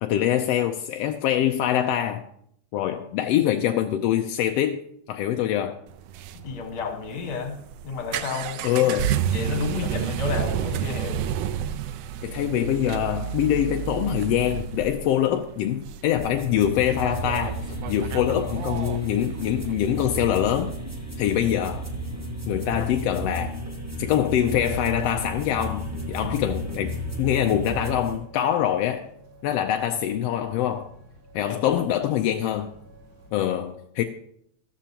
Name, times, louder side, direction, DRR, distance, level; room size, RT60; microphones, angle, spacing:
voice 1, 0.0-2.2 2.7-4.8 5.1-5.8 8.6-9.1 9.8-9.9 12.2-17.6 17.9-20.7 21.2-21.9 22.5-23.5 24.0-29.1 29.4-30.9 31.3-32.7 33.3-34.0, left 11 dB, 75° left, 1.5 m, -24 dB
sound 1, 5.9-19.7, right 10 dB, 80° right, 1.5 m, -31 dB
voice 2, 6.3-9.0 9.3-11.3 31.5-31.8, left 5 dB, 50° left, 2.2 m, -32 dB
sound 2, 16.2-28.2, right 1 dB, 15° right, 0.5 m, -33 dB
sound 3, 25.9-33.3, right 1 dB, 55° right, 7.1 m, -50 dB
14.0 x 13.0 x 2.9 m
omnidirectional pair, 3.3 m